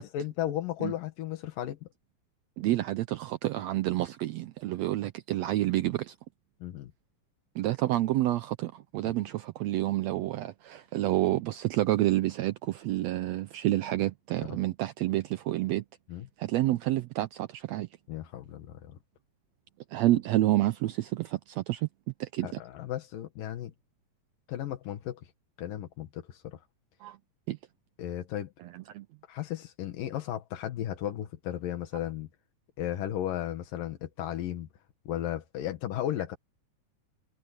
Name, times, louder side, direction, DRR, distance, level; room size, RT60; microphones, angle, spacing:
voice 1, 0.0-1.9 6.6-6.9 9.0-9.1 14.4-14.6 16.1-16.3 18.1-19.0 22.4-23.7 24.5-25.2 25.6-26.6 28.0-28.5 29.3-32.3 32.8-34.7 35.1-36.4, left 12 dB, 85° left, 3.1 m, -35 dB
voice 2, 2.6-6.1 7.5-15.8 16.4-17.9 19.9-21.9 22.2-22.6 27.0-27.2 27.5-27.6 28.6-29.1, right 15 dB, 85° right, 1.5 m, -29 dB
omnidirectional pair, 3.8 m